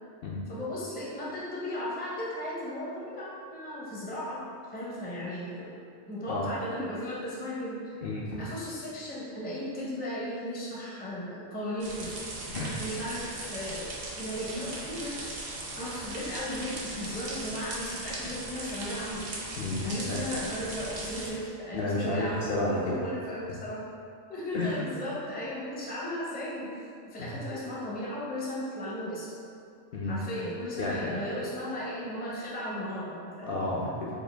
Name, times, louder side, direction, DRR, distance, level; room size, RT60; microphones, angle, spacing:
voice 1, 0.5-4.4 4.7-5.7 6.1-8.0 8.4-12.2 12.8-15.2 15.8-19.3 19.8-23.8 24.3-26.7 27.1-29.3 30.0-33.6, left 1 dB, 10° left, -6 dB, 0.5 m, -36 dB
voice 2, 8.0-8.4 12.5-12.7 19.6-20.2 21.7-23.0 24.5-24.8 27.2-27.4 29.9-30.2 30.8-31.1 33.4-34.1, left 2 dB, 60° left, -6 dB, 0.6 m, -31 dB
sound 1, 11.8-21.3, right 2 dB, 55° right, 0.8 m, -38 dB
4.4 x 2.5 x 3.3 m, 2.3 s
omnidirectional pair, 1.2 m